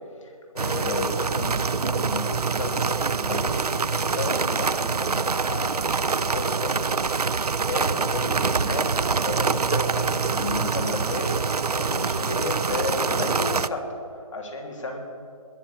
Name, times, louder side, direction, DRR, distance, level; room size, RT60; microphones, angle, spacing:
voice 1, 0.2-14.0 14.3-15.0, left 2 dB, 55° left, 1 dB, 3.3 m, -33 dB
sound 1, 0.6-13.7, right 5 dB, 85° right, 0.5 m, -25 dB
20.5 x 6.9 x 9.3 m, 2.3 s
figure-of-eight pair, 150°, 19 cm